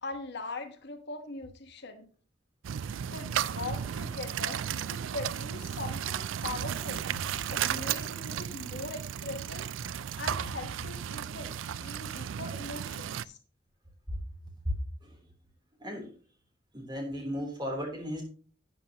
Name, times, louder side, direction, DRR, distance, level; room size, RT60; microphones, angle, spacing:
voice 1, 0.0-2.1 3.1-7.1 7.5-9.7 10.2-13.4, left 3 dB, 65° left, 1.2 m, -41 dB
sound 1, 2.6-13.3, right 9 dB, 85° right, 0.4 m, -34 dB
voice 2, 16.7-18.2, equal, 25° right, 3.4 m, -35 dB
12.0 x 8.6 x 2.9 m
head